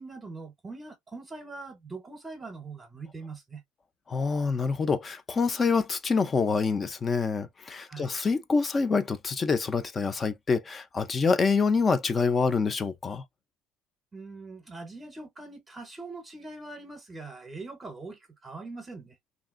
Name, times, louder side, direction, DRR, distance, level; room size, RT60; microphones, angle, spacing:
voice 1, 0.0-3.6 7.9-8.2 14.1-19.2, right 3 dB, 15° right, 0.7 m, -42 dB
voice 2, 4.1-13.2, left 4 dB, 25° left, 0.4 m, -26 dB
2.8 x 2.5 x 2.4 m
supercardioid pair, 125°, 0 cm